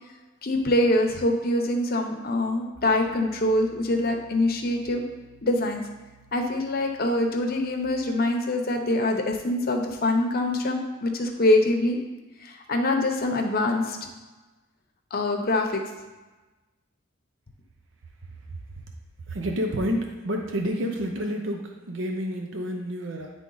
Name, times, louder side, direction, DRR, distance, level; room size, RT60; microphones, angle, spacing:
voice 1, 0.4-5.0 5.4-5.8 6.3-12.0 12.4-14.0 15.1-15.8, left 1 dB, 50° left, 3 dB, 0.8 m, -24 dB
Piano, 2.7-7.9, right 2 dB, 85° right, 1.8 m, -54 dB
voice 2, 19.3-23.3, equal, 65° right, 2 dB, 0.7 m, -29 dB
9.7 x 3.5 x 3.9 m, 1.2 s
head